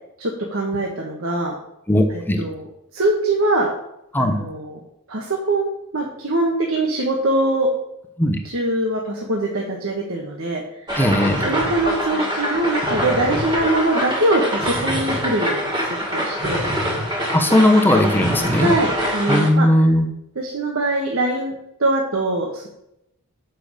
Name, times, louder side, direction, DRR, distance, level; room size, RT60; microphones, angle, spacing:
voice 1, 0.2-1.6 2.1-2.7 2.9-3.7 4.2-4.8 5.1-7.7 8.4-10.9 11.4-16.7 18.6-19.7 20.3-21.5 21.8-22.7, right 2 dB, 65° right, -1 dB, 1.4 m, -22 dB
voice 2, 1.9-2.5 4.1-4.4 8.2-8.4 11.0-11.5 17.3-18.7 19.3-20.1, left 1 dB, 10° left, 4 dB, 1.0 m, -17 dB
sound 1, 10.9-19.5, equal, 20° right, 2.0 m, -24 dB
6.9 x 5.9 x 6.7 m, 0.82 s
head